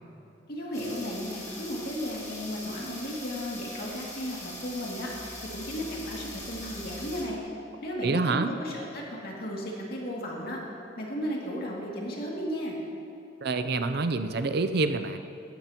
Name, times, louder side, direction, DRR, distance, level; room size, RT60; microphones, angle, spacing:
voice 1, 0.5-7.4 7.8-10.6 10.9-12.8, equal, 55° left, -3 dB, 2.5 m, -35 dB
sound 1, 0.7-7.4, left 1 dB, 20° left, 2.4 m, -42 dB
voice 2, 8.0-8.5 13.4-15.2, right 3 dB, 60° right, 10 dB, 0.5 m, -27 dB
16.5 x 12.5 x 3.0 m, 2.9 s
head